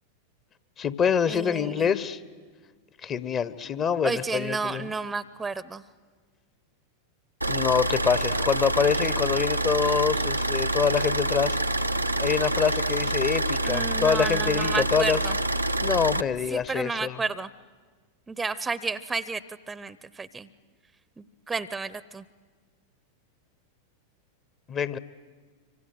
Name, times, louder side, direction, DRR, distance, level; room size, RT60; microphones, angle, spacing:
voice 1, 0.8-2.2 3.0-4.9 7.5-11.6 12.2-15.2 15.8-17.2 24.7-25.0, left 7 dB, 30° left, 16 dB, 1.0 m, -25 dB
voice 2, 1.3-1.9 4.0-5.8 13.6-15.3 16.5-17.5 18.3-19.4 19.7-20.5 21.2-22.2, right 4 dB, 15° right, 18 dB, 0.8 m, -31 dB
Car / Idling, 7.4-16.2, right 1 dB, 90° right, 0.8 m, -26 dB
25.5 x 25.0 x 9.2 m, 1.5 s
figure-of-eight pair, 90°, 0 cm